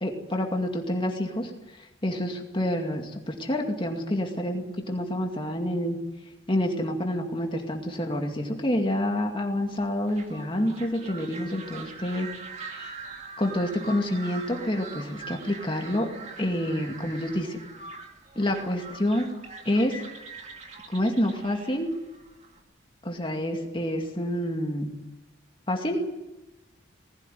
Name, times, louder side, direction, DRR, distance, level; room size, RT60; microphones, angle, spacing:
voice 1, 0.0-6.0 6.5-12.3 12.6-12.9 13.4-16.1 16.4-17.6 18.4-19.3 19.7-20.0 20.9-21.9 23.0-24.9 25.7-26.0, left 1 dB, 25° left, 2 dB, 2.3 m, -28 dB
sound 1, 9.8-22.6, right 4 dB, 35° right, 2.1 m, -43 dB
19.5 x 16.0 x 9.4 m, 0.99 s
head